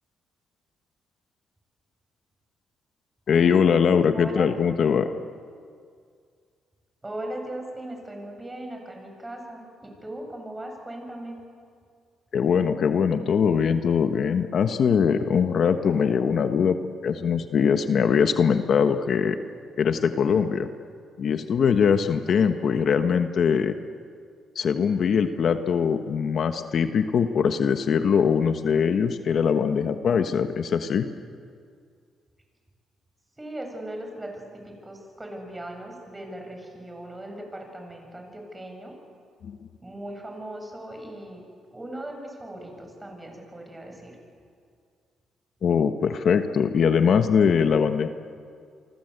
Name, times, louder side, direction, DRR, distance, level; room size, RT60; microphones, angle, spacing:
voice 1, 3.3-5.1 12.3-16.8 17.0-19.4 19.8-20.7 21.2-23.7 24.5-31.1 39.4-39.6 45.6-48.1, left 6 dB, 60° left, 8 dB, 1.3 m, -22 dB
voice 2, 4.1-4.5 7.0-11.4 33.4-39.0 39.8-41.4 41.7-44.2, right 1 dB, 15° right, 3 dB, 7.5 m, -38 dB
29.0 x 24.5 x 8.1 m, 2.2 s
cardioid pair, 90°, 0 cm